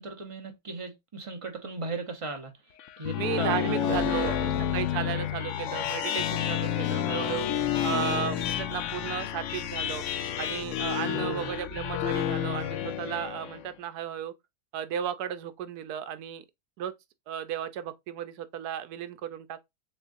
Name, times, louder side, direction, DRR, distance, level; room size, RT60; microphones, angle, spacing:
voice 1, 0.0-2.5 3.0-4.6 11.0-11.5, right 2 dB, 30° right, 0.6 m, -37 dB
sound 1, 2.8-13.6, left 10 dB, 70° left, 0.7 m, -30 dB
voice 2, 3.2-7.5 7.8-10.0 10.4-14.3 14.7-16.4 16.8-16.9 17.3-19.6, right 10 dB, 85° right, 1.2 m, -34 dB
6.4 x 2.5 x 2.5 m
omnidirectional pair, 1.6 m